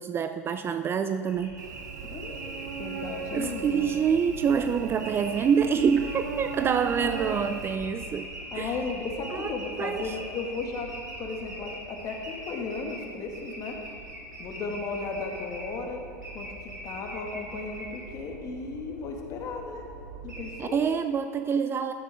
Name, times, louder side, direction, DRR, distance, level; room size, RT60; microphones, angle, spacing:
voice 1, 0.0-1.6 3.3-8.3 8.5-8.8 9.3-10.2 20.6-21.9, right 7 dB, 25° right, 9 dB, 0.4 m, -26 dB
sound 1, 1.2-20.5, right 1 dB, 85° right, 3.3 m, -42 dB
Cricket / Buzz, 1.6-7.8, right 6 dB, 70° right, 1.0 m, -37 dB
voice 2, 2.0-3.9 7.0-7.2 8.5-13.8 14.4-16.0 16.3-16.5 16.8-19.8 20.2-20.8, left 4 dB, 35° left, 1 dB, 2.0 m, -35 dB
14.5 x 10.5 x 3.7 m, 2.7 s
figure-of-eight pair, 90°, 10 cm